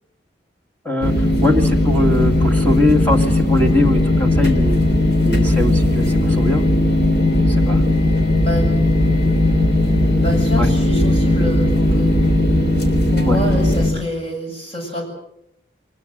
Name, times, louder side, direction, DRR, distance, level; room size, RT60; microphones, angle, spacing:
voice 1, 0.8-4.8 5.2-6.6 7.5-7.8 10.6-10.7 13.3-13.4, left 2 dB, 10° left, 1 dB, 2.1 m, -21 dB
sound 1, 1.0-13.9, left 1 dB, 70° left, 3.6 m, -17 dB
voice 2, 8.4-9.2 10.2-12.4 13.1-15.1, equal, 30° left, 1 dB, 7.6 m, -27 dB
24.0 x 21.0 x 7.9 m, 0.77 s
head